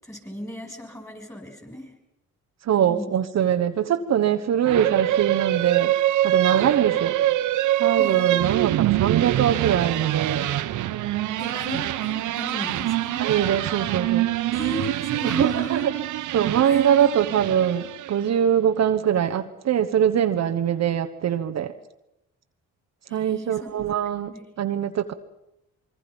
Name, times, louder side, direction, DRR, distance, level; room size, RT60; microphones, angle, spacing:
voice 1, 0.0-1.9 2.9-3.1 8.0-8.4 11.4-13.2 14.5-15.9 16.6-16.8 23.1-23.7 24.3-24.4, equal, 10° left, 4 dB, 6.0 m, -36 dB
voice 2, 2.6-5.9 6.2-7.2 7.8-10.5 13.2-14.3 15.2-15.9 16.3-21.7 23.1-25.1, right 9 dB, 60° right, 7 dB, 1.2 m, -23 dB
sound 1, 4.7-18.3, right 14 dB, 80° right, 0.9 m, -24 dB
25.5 x 23.0 x 5.4 m, 0.90 s
cardioid pair, 90°, 30 cm